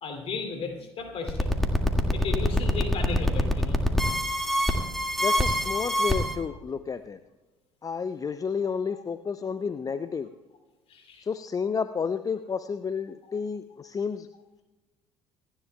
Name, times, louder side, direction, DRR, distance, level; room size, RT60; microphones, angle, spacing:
voice 1, 0.0-1.5 2.1-3.8 8.9-9.0 10.9-11.2 13.3-13.4, left 5 dB, 45° left, 4 dB, 2.6 m, -35 dB
sound 1, 1.3-6.3, left 1 dB, ahead, 2.0 m, -24 dB
voice 2, 5.2-7.2 7.8-10.3 11.2-14.3, left 6 dB, 25° left, 12 dB, 0.6 m, -31 dB
27.0 x 10.5 x 2.3 m, 1.1 s
figure-of-eight pair, 55°, 14 cm